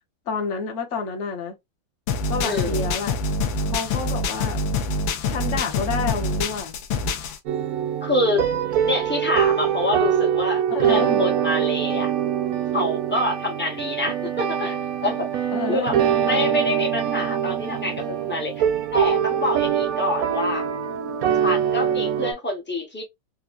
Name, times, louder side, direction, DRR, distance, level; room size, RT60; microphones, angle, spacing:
voice 1, 0.3-1.6 2.3-3.2 3.6-4.6 5.2-6.8 10.7-11.3 15.5-16.1, left 4 dB, 45° left, 1.1 m, -29 dB
sound 1, 2.1-7.4, left 2 dB, 85° left, 1.5 m, -25 dB
voice 2, 2.4-2.9 8.0-8.5 8.8-12.1 12.7-18.6 18.9-20.6 21.4-23.0, left 2 dB, 15° left, 0.3 m, -26 dB
sound 2, 7.5-22.3, right 9 dB, 65° right, 0.9 m, -23 dB
4.7 x 2.3 x 2.4 m
omnidirectional pair, 2.1 m